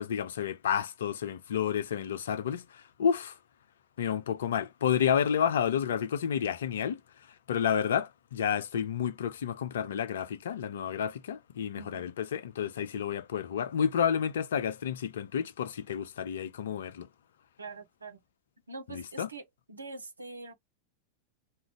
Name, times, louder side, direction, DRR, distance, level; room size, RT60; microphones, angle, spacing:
voice 1, 0.0-3.4 4.0-7.0 7.5-17.1 18.9-19.3, left 8 dB, 60° left, 0.4 m, -30 dB
voice 2, 11.7-12.1 17.6-18.2 18.7-20.5, right 3 dB, 75° right, 0.6 m, -44 dB
2.4 x 2.2 x 3.5 m
figure-of-eight pair, 90°, 0 cm